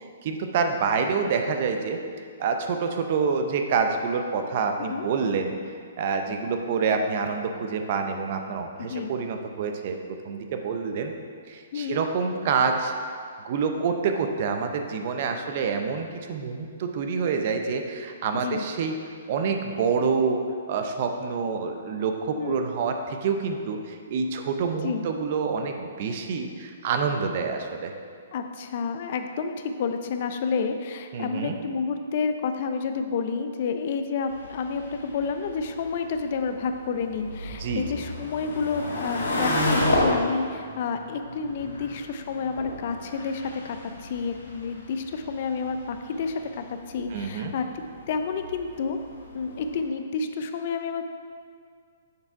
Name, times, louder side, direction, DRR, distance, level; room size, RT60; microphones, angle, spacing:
voice 1, 0.2-2.0 2.4-5.5 6.0-11.1 11.5-12.9 13.4-19.0 19.3-27.9 31.1-31.5 37.6-37.8 47.1-47.5, right 5 dB, 50° right, 5 dB, 0.6 m, -27 dB
voice 2, 8.8-9.1 11.7-12.0 18.3-18.6 22.4-22.6 24.8-25.0 28.3-47.7 48.1-49.0 49.3-51.2, left 5 dB, 50° left, 7 dB, 0.4 m, -30 dB
sound 1, 34.3-49.8, left 1 dB, 85° left, 1.5 m, -33 dB
6.6 x 3.5 x 4.5 m, 2.1 s
hypercardioid pair, 145°, 0 cm